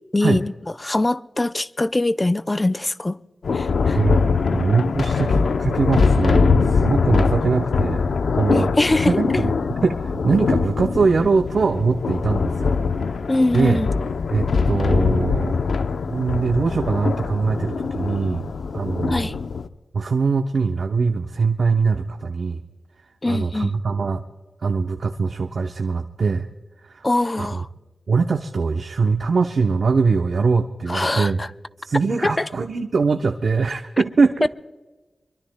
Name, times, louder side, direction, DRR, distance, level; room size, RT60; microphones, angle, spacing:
voice 1, 0.1-0.5 0.8-3.2 3.5-4.0 8.5-9.2 13.3-13.9 19.1-19.3 23.2-23.7 27.0-27.7 30.9-31.5 32.2-32.5 34.4-34.5, left 2 dB, 25° left, 0.5 m, -22 dB
Thunder, 3.4-19.7, left 5 dB, 85° left, 0.6 m, -22 dB
voice 2, 4.5-8.7 9.1-9.5 9.8-12.7 13.5-13.8 14.3-15.6 16.1-19.3 19.9-22.6 23.3-24.2 24.6-26.5 26.8-27.1 27.4-27.6 28.1-31.4 31.8-34.5, right 4 dB, 65° right, 0.7 m, -22 dB
25.0 x 23.0 x 2.2 m
wide cardioid pair, 105°, 0 cm